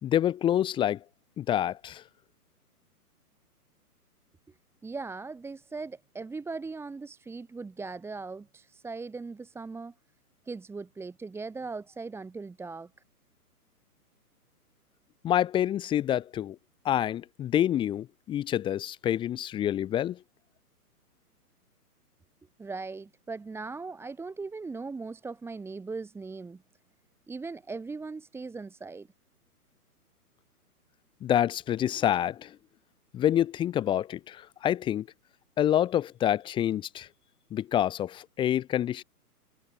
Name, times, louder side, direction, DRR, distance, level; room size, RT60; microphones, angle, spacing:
voice 1, 0.0-1.0 1.4-2.0 15.2-16.6 16.8-20.2 31.2-32.6 33.1-35.1 35.6-37.1 37.5-39.0, left 11 dB, 10° left, 0.9 m, -27 dB
voice 2, 4.8-9.9 10.5-12.9 22.6-26.6 27.3-29.1, right 4 dB, 5° right, 1.8 m, -39 dB
hypercardioid pair, 135°, 47 cm